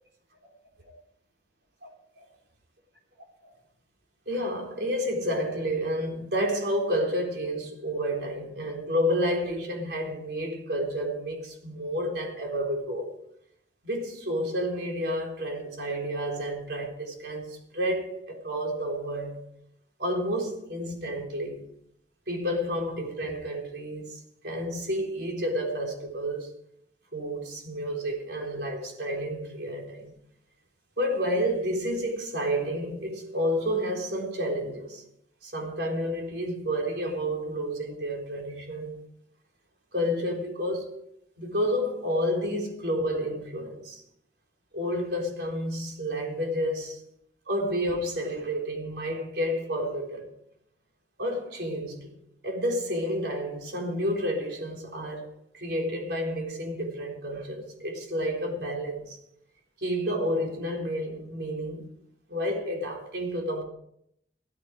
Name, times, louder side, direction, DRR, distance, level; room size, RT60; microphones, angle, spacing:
voice 1, 4.3-13.1 13.8-19.4 20.0-21.6 22.3-26.5 27.1-30.1 31.0-35.0 35.4-39.0 39.9-41.0 41.4-44.0 44.7-47.0 47.5-50.3 51.2-52.1 52.4-55.3 55.5-59.2 59.8-61.9 62.3-63.6, equal, 70° right, 3.8 m, -30 dB
16.0 x 13.5 x 4.9 m
head